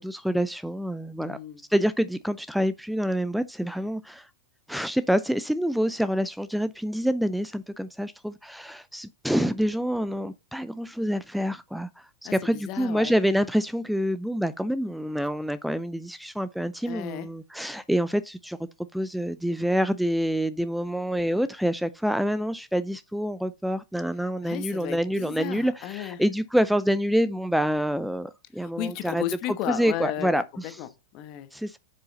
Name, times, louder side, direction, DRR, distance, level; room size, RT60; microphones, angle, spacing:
voice 1, 0.0-1.4 1.7-4.3 4.7-18.6 18.9-29.2 29.7-30.8 31.5-31.8, equal, ahead, 0.4 m, -27 dB
voice 2, 1.2-1.6 12.2-13.1 16.9-17.3 24.4-26.2 28.6-31.5, left 12 dB, 45° left, 1.1 m, -34 dB
7.8 x 5.6 x 4.0 m
hypercardioid pair, 105°, 0 cm